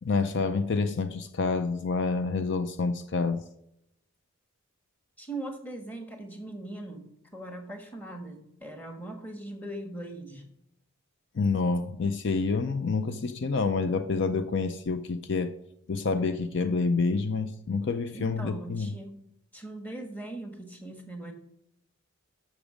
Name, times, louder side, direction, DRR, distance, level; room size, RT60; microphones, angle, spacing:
voice 1, 0.0-3.4 11.4-15.5 15.9-18.9, left 4 dB, 55° left, 10 dB, 0.5 m, -28 dB
voice 2, 5.2-7.1 7.3-10.4 18.1-19.2 19.5-21.3, right 2 dB, 10° left, 4 dB, 1.4 m, -40 dB
12.0 x 6.2 x 5.0 m, 0.79 s
head